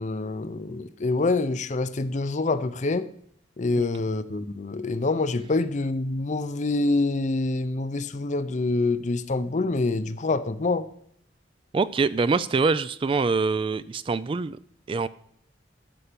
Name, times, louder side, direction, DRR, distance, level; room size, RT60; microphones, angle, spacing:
voice 1, 0.0-3.1 3.6-10.9, left 3 dB, 40° left, 0.6 m, -26 dB
voice 2, 11.7-14.6 14.9-15.1, right 4 dB, 30° right, 0.3 m, -24 dB
13.0 x 5.7 x 6.8 m
head